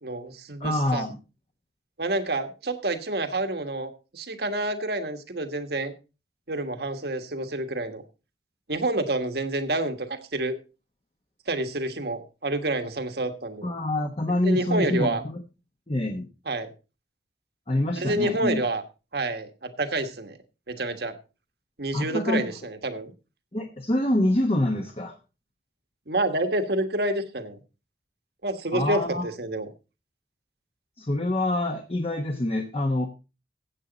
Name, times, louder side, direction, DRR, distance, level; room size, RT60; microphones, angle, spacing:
voice 1, 0.0-1.0 2.0-5.9 6.5-8.0 8.7-10.6 11.5-13.7 14.4-15.2 16.5-16.7 18.0-18.8 19.1-20.4 20.7-21.2 21.8-23.1 26.1-27.6 28.4-29.7, right 2 dB, 60° right, 8 dB, 1.4 m, -28 dB
voice 2, 0.6-1.2 13.6-15.4 15.9-16.3 17.7-18.6 21.9-22.5 23.5-25.2 28.7-29.3 31.0-33.1, left 1 dB, 30° left, 4 dB, 1.1 m, -26 dB
15.0 x 8.3 x 4.0 m, 0.32 s
head